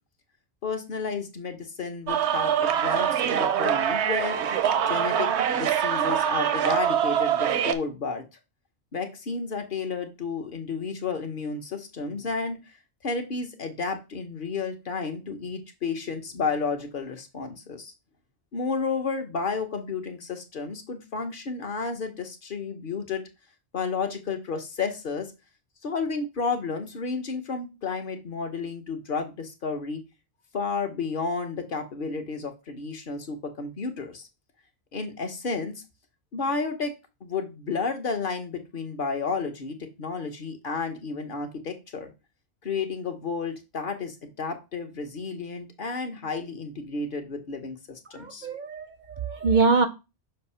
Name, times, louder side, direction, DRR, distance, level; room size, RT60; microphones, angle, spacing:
voice 1, 0.6-4.4 4.9-8.2 8.9-12.6 13.0-17.9 18.5-23.2 23.7-25.3 25.8-30.0 30.5-34.3 34.9-35.8 36.3-36.9 37.2-42.1 42.6-48.6, left 4 dB, 50° left, 1.0 m, -32 dB
sound 1, 2.1-7.7, right 9 dB, 85° right, 0.9 m, -24 dB
voice 2, 48.1-49.9, right 4 dB, 55° right, 0.6 m, -24 dB
6.5 x 2.6 x 5.5 m
omnidirectional pair, 1.1 m